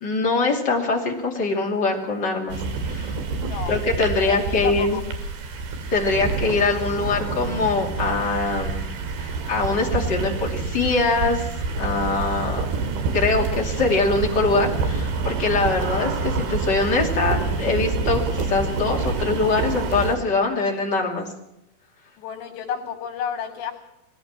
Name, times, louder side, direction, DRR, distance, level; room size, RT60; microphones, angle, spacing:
voice 1, 0.0-3.1 3.7-5.0 5.9-8.9 9.2-11.5 11.8-12.7 13.1-21.3, left 3 dB, 30° left, 0 dB, 2.8 m, -23 dB
sound 1, 2.5-20.2, right 4 dB, 65° right, 4.0 m, -27 dB
voice 2, 3.4-3.7 4.2-5.0 22.2-23.7, left 7 dB, 80° left, -5 dB, 4.8 m, -31 dB
20.5 x 17.0 x 7.5 m, 0.88 s
omnidirectional pair, 4.9 m